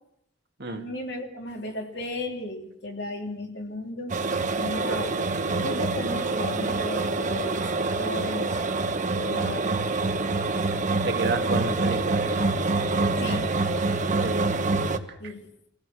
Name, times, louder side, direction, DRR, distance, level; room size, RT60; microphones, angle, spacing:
voice 1, 0.6-4.1 4.6-5.2 5.6-8.6 9.2-9.7 11.5-11.8 13.2-13.5 15.2-15.5, left 1 dB, 65° left, 3.9 m, -35 dB
sound 1, 4.1-15.0, right 3 dB, 45° right, 1.4 m, -26 dB
voice 2, 9.4-9.9 11.0-12.5 14.2-14.7 15.1-15.3, right 3 dB, 65° right, 2.2 m, -32 dB
26.0 x 16.0 x 6.4 m
head